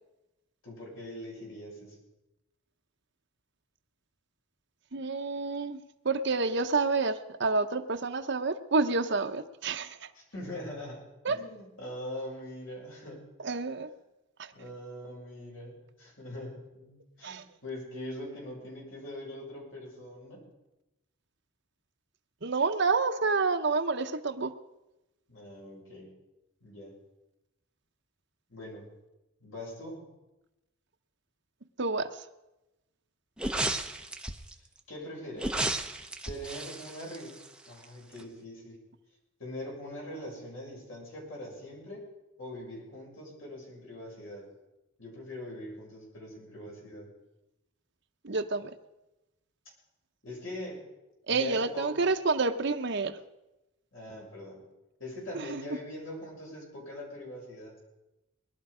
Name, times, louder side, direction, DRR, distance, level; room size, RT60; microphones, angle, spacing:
voice 1, 0.6-2.0 10.1-13.2 14.5-20.4 25.3-26.1 26.6-27.0 28.5-28.9 29.4-30.0 34.9-35.7 36.2-37.4 37.7-38.8 39.4-42.0 42.4-44.5 45.0-47.1 50.2-50.8 51.3-51.9 53.9-54.6 55.0-57.8, left 1 dB, 70° left, -2 dB, 6.5 m, -42 dB
voice 2, 4.9-10.1 11.2-11.4 13.4-13.9 14.4-14.5 17.2-17.4 22.4-24.5 31.8-32.2 48.2-48.7 51.3-53.2 55.3-55.6, right 4 dB, 55° right, 7 dB, 0.9 m, -29 dB
sound 1, 33.4-34.5 35.4-37.8 38.2-38.3, right 2 dB, 5° right, 0.8 m, -33 dB
20.5 x 12.0 x 5.0 m, 0.97 s
head